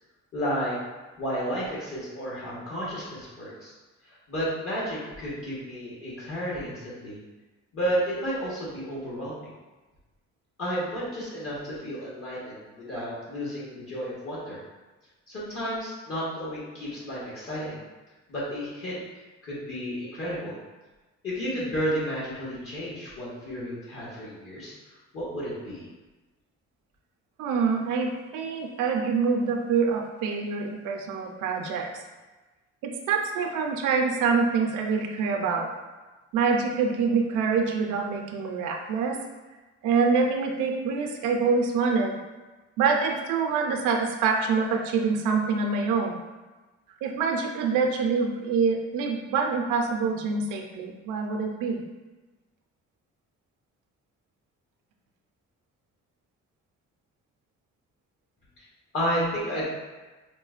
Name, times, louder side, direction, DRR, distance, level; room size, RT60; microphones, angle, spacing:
voice 1, 0.3-0.8 1.2-3.7 4.0-7.2 7.7-9.5 10.6-14.6 15.3-17.8 18.3-19.0 19.4-20.5 21.2-24.7 25.1-25.8 58.6-58.7 58.9-59.6, equal, 50° left, -7 dB, 1.2 m, -32 dB
voice 2, 27.4-31.9 32.8-35.7 36.3-39.2 39.8-42.2 42.8-46.2 47.0-51.8, right 5 dB, 85° right, 2 dB, 0.5 m, -25 dB
4.8 x 2.1 x 2.4 m, 1.2 s
cardioid pair, 90°, 30 cm